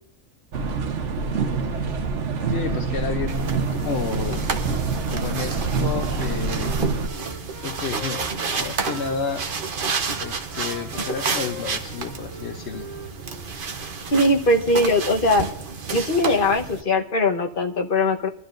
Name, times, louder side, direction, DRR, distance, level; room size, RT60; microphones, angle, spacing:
sound 1, 0.5-7.1, right 4 dB, 75° right, 1.3 m, -26 dB
voice 1, 2.5-4.5 5.1-6.8 7.6-8.2 8.5-9.4 10.2-12.9, left 6 dB, 65° left, 7 dB, 1.0 m, -31 dB
sound 2, 3.3-16.8, right 5 dB, 50° right, 1.0 m, -30 dB
Wind instrument woodwind instrument, 6.1-9.4 10.0-13.6, left 1 dB, 15° left, 1.5 m, -41 dB
voice 2, 14.1-15.5 15.9-18.3, left 1 dB, 45° left, 3 dB, 1.2 m, -20 dB
23.5 x 12.5 x 2.5 m, 0.68 s
omnidirectional pair, 1.3 m